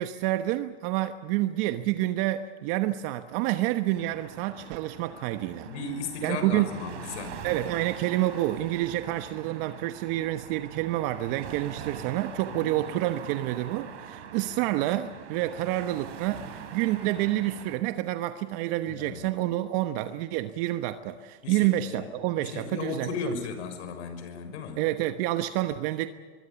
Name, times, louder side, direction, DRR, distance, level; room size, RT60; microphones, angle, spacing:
voice 1, 0.0-5.7 6.2-6.7 7.4-23.3 24.8-26.1, right 15 dB, 55° right, 1.2 m, -28 dB
sound 1, 4.0-17.8, right 8 dB, 75° right, 4.6 m, -43 dB
voice 2, 5.6-7.4 12.6-12.7 18.9-19.3 21.4-22.1 22.4-24.8, left 5 dB, 75° left, 6.5 m, -36 dB
25.0 x 23.0 x 7.1 m
supercardioid pair, 125°, 34 cm